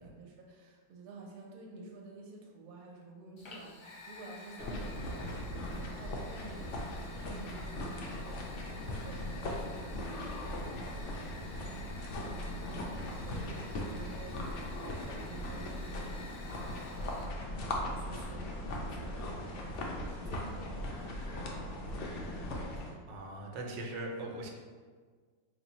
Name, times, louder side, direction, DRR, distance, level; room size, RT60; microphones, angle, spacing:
voice 1, 0.0-11.9 12.6-23.0, right 2 dB, 65° right, -1 dB, 1.0 m, -51 dB
Fire, 3.4-17.2, left 2 dB, 60° left, 1.0 m, -51 dB
sound 1, 4.6-22.9, left 1 dB, 80° left, 0.6 m, -39 dB
voice 2, 23.1-24.5, right 1 dB, 90° right, 1 dB, 1.3 m, -40 dB
3.2 x 2.7 x 4.0 m, 1.5 s
omnidirectional pair, 1.9 m